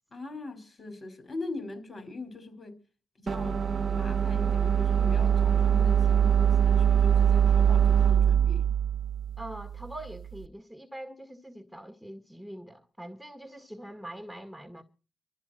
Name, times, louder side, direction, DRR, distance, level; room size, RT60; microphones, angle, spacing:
voice 1, 0.1-2.8 3.2-3.6 3.9-8.7, left 2 dB, 35° left, 4.9 m, -41 dB
sound 1, 3.3-10.3, right 8 dB, 45° right, 1.2 m, -23 dB
voice 2, 9.4-14.8, right 1 dB, 5° left, 1.8 m, -43 dB
24.5 x 13.0 x 4.4 m
cardioid pair, 70°, 0 cm